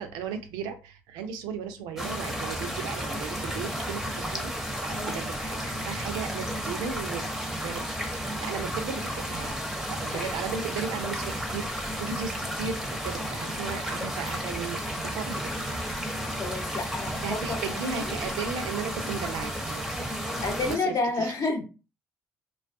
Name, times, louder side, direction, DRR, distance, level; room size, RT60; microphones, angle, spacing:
voice 1, 0.0-7.2 7.6-7.8 8.1-9.5 9.9-15.4 15.7-15.9 16.7-20.1 20.6-21.5, right 6 dB, 75° right, 8 dB, 0.4 m, -36 dB
sound 1, 2.0-20.8, equal, 5° right, 0.7 m, -33 dB
voice 2, 16.4-17.6 17.8-18.1 20.4-21.6, left 3 dB, 50° left, 4 dB, 0.7 m, -30 dB
2.3 x 2.2 x 2.5 m, 0.32 s
hypercardioid pair, 55°, 7 cm